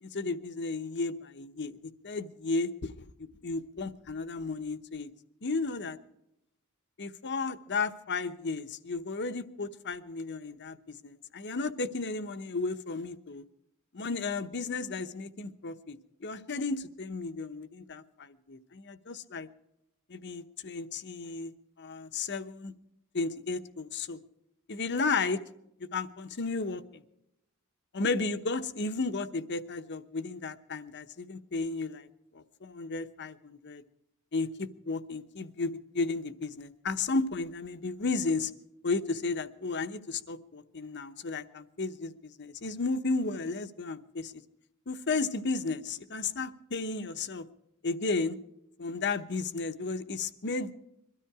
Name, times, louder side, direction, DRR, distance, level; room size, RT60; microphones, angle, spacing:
voice 1, 0.0-5.1 5.4-6.0 7.0-13.4 13.9-19.5 20.1-21.5 21.8-22.7 23.1-24.2 24.7-25.4 25.9-27.0 27.9-32.1 32.3-33.8 34.3-38.5 38.8-44.4 44.9-47.5 47.8-48.4 48.8-50.7, left 3 dB, 55° left, 11 dB, 1.0 m, -34 dB
22.5 x 13.0 x 4.8 m, 0.84 s
head